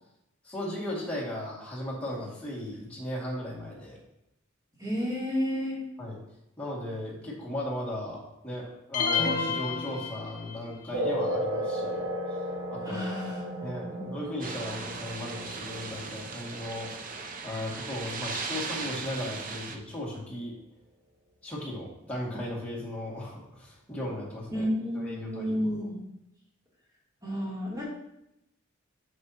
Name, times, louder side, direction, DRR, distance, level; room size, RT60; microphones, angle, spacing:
voice 1, 0.4-4.0 6.0-6.2 6.6-12.1 12.7-13.1 13.6-16.9 17.4-20.5 21.4-24.7 25.2-25.7, left 1 dB, 5° left, -5 dB, 2.2 m, -36 dB
voice 2, 4.8-5.8 12.8-14.2 24.5-26.0 27.2-27.8, equal, 20° right, -7 dB, 3.0 m, -31 dB
sound 1, 8.9-10.8, left 5 dB, 40° left, 0.9 m, -29 dB
sound 2, 10.9-17.9, equal, 70° right, 1.8 m, -35 dB
sound 3, 14.4-19.8, right 4 dB, 40° right, 0.7 m, -38 dB
8.3 x 6.9 x 2.9 m, 0.83 s
head